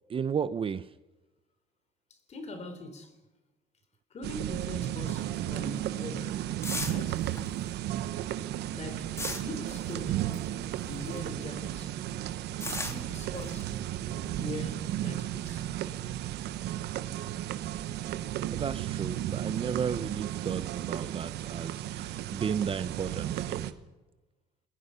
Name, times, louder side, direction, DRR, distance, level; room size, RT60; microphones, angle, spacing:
voice 1, 0.1-0.9 18.5-23.7, right 7 dB, 30° right, 0.7 m, -33 dB
voice 2, 2.1-3.2 4.1-6.6 6.9-7.3 8.7-10.2 10.9-12.0 12.9-13.8 14.2-15.7, left 2 dB, 40° left, 3.7 m, -42 dB
sound 1, 4.2-23.7, right 12 dB, 80° right, 1.1 m, -34 dB
sound 2, 5.4-11.4 11.7-15.1, left 2 dB, 15° left, 2.6 m, -40 dB
27.5 x 21.5 x 5.7 m
cardioid pair, 110°, 17 cm